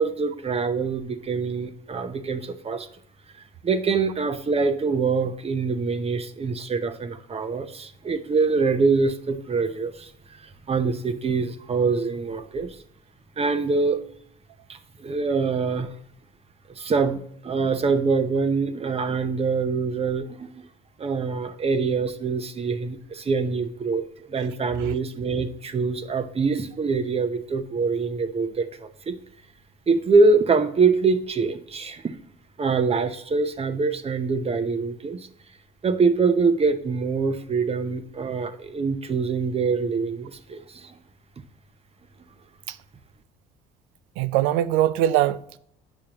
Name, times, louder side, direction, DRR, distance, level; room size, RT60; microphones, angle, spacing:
voice 1, 0.0-2.9 3.6-10.1 10.4-12.8 13.4-14.0 14.7-15.9 16.7-20.6 21.0-29.2 29.9-32.1 32.6-35.3 35.8-41.0, right 4 dB, 35° right, 0.8 m, -24 dB
voice 2, 44.2-45.6, right 13 dB, 85° right, 0.4 m, -22 dB
8.9 x 6.3 x 3.0 m
supercardioid pair, 75°, 18 cm